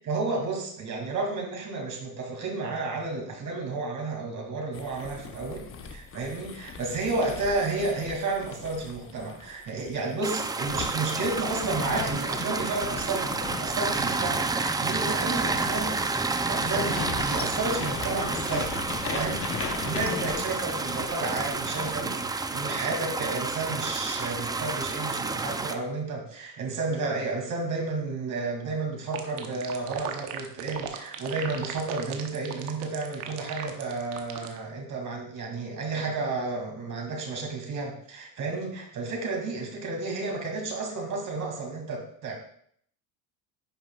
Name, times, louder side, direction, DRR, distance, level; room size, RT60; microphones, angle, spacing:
voice 1, 0.1-18.7 19.1-42.3, right 3 dB, 45° right, 1 dB, 2.4 m, -32 dB
sound 1, 4.7-10.1 10.6-22.2, left 5 dB, 30° left, 0.8 m, -39 dB
sound 2, 10.2-25.7, right 3 dB, 10° right, 0.4 m, -30 dB
sound 3, 29.1-34.6, right 10 dB, 85° right, 1.0 m, -36 dB
10.0 x 5.6 x 2.3 m, 0.64 s
supercardioid pair, 95°, 43 cm